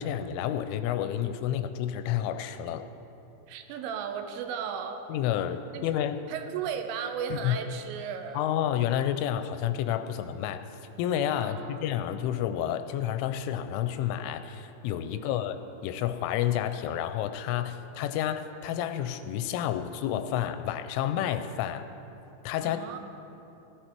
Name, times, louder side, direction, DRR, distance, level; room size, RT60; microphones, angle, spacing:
voice 1, 0.0-2.9 5.1-6.2 7.3-7.5 8.3-10.6 11.0-15.6 15.8-21.8 22.4-22.8, left 10 dB, 85° left, 10 dB, 3.0 m, -30 dB
voice 2, 3.5-5.1 5.7-5.8 6.3-8.4 11.4-11.8 15.1-15.4 22.6-23.0, right 7 dB, 85° right, 6 dB, 3.4 m, -35 dB
16.0 x 12.0 x 4.5 m, 3.0 s
omnidirectional pair, 5.7 m